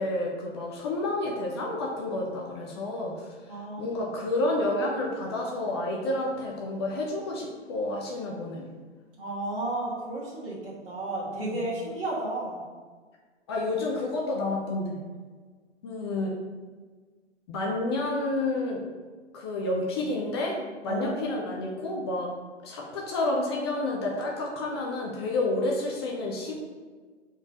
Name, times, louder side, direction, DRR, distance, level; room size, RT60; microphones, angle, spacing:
voice 1, 0.0-3.3 3.8-8.6 11.3-11.6 13.5-15.0 15.8-16.3 17.5-18.8 19.3-20.6 20.8-22.3 22.6-26.5, left 2 dB, 20° left, -1 dB, 0.6 m, -30 dB
voice 2, 3.5-4.3 9.2-12.6 20.9-21.1, right 2 dB, 50° right, -6 dB, 1.7 m, -33 dB
4.7 x 4.5 x 4.9 m, 1.4 s
figure-of-eight pair, 125°, 35 cm